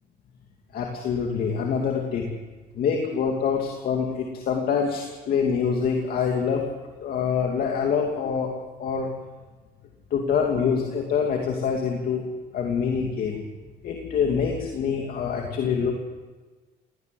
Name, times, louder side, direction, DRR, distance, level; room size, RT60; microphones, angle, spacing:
voice 1, 0.7-2.3 2.7-6.6 7.0-8.5 8.8-9.1 10.1-12.2 12.5-13.4 13.8-15.9, left 6 dB, 60° left, 1 dB, 2.7 m, -25 dB
18.5 x 18.0 x 7.9 m, 1.3 s
cardioid pair, 110°, 17 cm